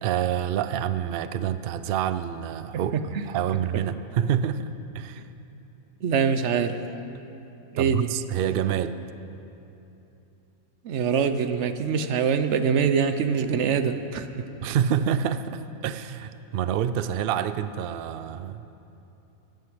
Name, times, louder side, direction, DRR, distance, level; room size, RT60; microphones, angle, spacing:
voice 1, 0.0-4.7 4.9-5.3 7.8-9.0 14.6-18.7, right 9 dB, 80° right, 13 dB, 0.5 m, -27 dB
voice 2, 6.0-6.8 7.7-8.1 10.8-14.5, right 6 dB, 60° right, 9 dB, 1.0 m, -24 dB
14.5 x 9.3 x 7.7 m, 2.9 s
omnidirectional pair, 1.5 m